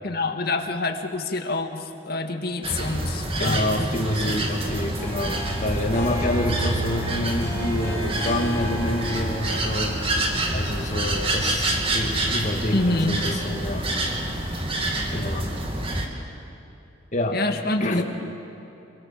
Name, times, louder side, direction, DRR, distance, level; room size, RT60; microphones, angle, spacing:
voice 1, 0.0-3.8 4.3-4.5 12.7-13.2 17.3-18.0, left 2 dB, 55° left, 5 dB, 1.9 m, -27 dB
sound 1, 2.6-16.1, right 1 dB, 30° right, 2.4 m, -27 dB
voice 2, 3.4-10.0 10.5-13.9 15.1-15.5 17.1-17.4 17.8-18.0, left 1 dB, 40° left, 2 dB, 2.3 m, -27 dB
Harp, 4.8-13.1, equal, 15° left, 5.7 m, -37 dB
27.5 x 23.0 x 7.6 m, 2.9 s
head